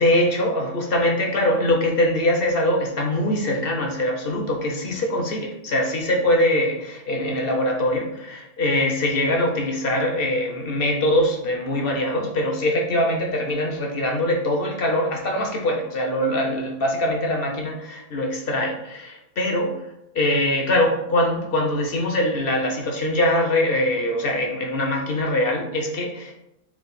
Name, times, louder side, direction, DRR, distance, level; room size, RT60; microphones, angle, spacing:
voice 1, 0.0-19.9 20.1-26.3, left 1 dB, 55° left, 1 dB, 0.7 m, -23 dB
4.5 x 2.4 x 3.9 m, 0.83 s
omnidirectional pair, 1.4 m